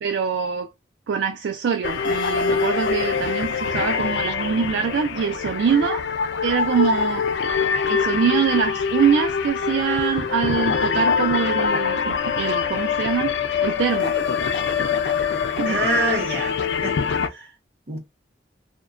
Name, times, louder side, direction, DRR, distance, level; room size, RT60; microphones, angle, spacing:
voice 1, 0.0-0.7 1.1-6.1 6.4-7.2 7.9-13.3 13.6-14.2 15.6-15.8, right 6 dB, 80° right, 0.3 m, -23 dB
sound 1, 1.8-17.3, left 6 dB, 75° left, 0.4 m, -24 dB
voice 2, 15.7-17.5 17.9-18.0, right 1 dB, 60° right, 1.0 m, -26 dB
2.8 x 2.1 x 2.4 m
head